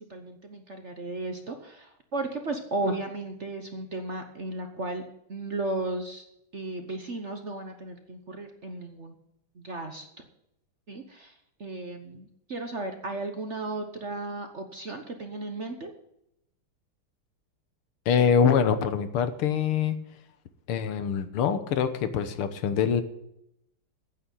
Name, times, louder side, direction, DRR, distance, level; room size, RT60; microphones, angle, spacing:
voice 1, 0.0-6.2 6.5-9.2 9.5-10.2 10.9-15.9, right 2 dB, 40° right, 5 dB, 1.1 m, -35 dB
voice 2, 18.1-20.0 20.7-23.0, left 7 dB, 80° left, 11 dB, 1.9 m, -24 dB
9.2 x 8.7 x 8.4 m, 0.80 s
omnidirectional pair, 2.4 m